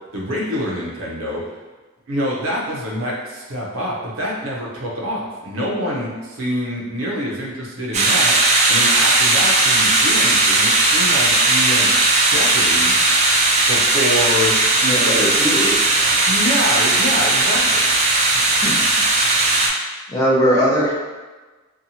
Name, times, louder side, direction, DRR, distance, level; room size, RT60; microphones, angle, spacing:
voice 1, 0.1-1.5 2.1-8.3 8.7-11.9 12.3-13.2 13.7-14.5 14.8-15.3 16.2-17.9, equal, 70° right, -3 dB, 0.6 m, -26 dB
sound 1, 7.9-19.7, right 2 dB, 35° right, 0.4 m, -17 dB
voice 2, 14.9-15.8 18.6-18.7 20.1-20.9, equal, 15° left, -7 dB, 0.6 m, -19 dB
2.7 x 2.3 x 2.7 m, 1.3 s
head